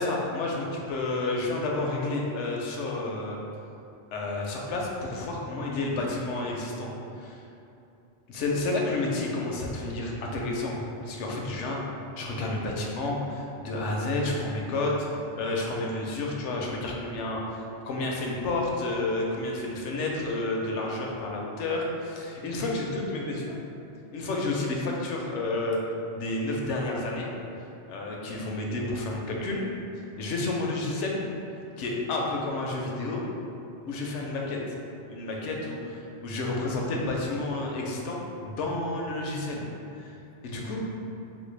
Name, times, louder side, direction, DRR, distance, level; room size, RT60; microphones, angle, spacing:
voice 1, 0.0-3.4 4.1-6.9 7.2-7.4 8.3-10.8 11.0-11.8 12.2-14.9 15.4-23.5 24.1-25.8 26.1-27.3 27.9-29.6 30.2-31.2 31.8-33.2 33.9-34.6 35.1-35.8 36.2-39.6 40.0-40.1 40.4-40.8, left 2 dB, 80° left, -1 dB, 0.9 m, -30 dB
3.9 x 2.1 x 3.2 m, 2.8 s
omnidirectional pair, 1.2 m